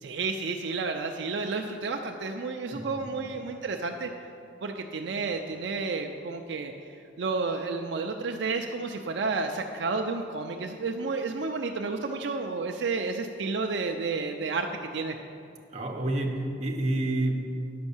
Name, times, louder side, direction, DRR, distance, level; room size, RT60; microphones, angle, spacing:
voice 1, 0.0-4.1 4.6-6.7 7.2-15.2, right 4 dB, 70° right, 3 dB, 0.5 m, -31 dB
voice 2, 2.7-3.2 15.7-17.5, right 1 dB, 35° right, 1 dB, 1.0 m, -29 dB
10.5 x 5.3 x 7.1 m, 2.6 s
head